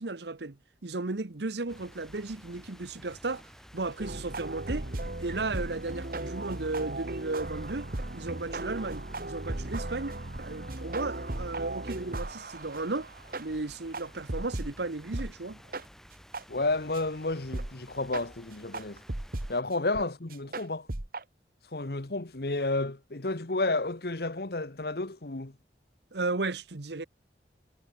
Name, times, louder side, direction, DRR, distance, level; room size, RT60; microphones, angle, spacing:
voice 1, 0.0-3.4 3.7-4.9 5.2-7.9 8.1-13.1 13.4-15.6 26.1-27.0, right 3 dB, 75° right, 1.1 m, -34 dB
sound 1, 1.7-19.6, equal, ahead, 6.1 m, -53 dB
sound 2, 4.0-14.7 15.1-15.3 15.7-15.8 16.3-16.4 16.9-17.0 17.5-17.7 18.1-18.2 18.7-19.5 19.9-20.0 20.3-21.2, right 2 dB, 55° right, 1.6 m, -36 dB
voice 2, 16.5-19.0 19.5-20.9 21.7-25.5, left 2 dB, 60° left, 1.3 m, -31 dB
head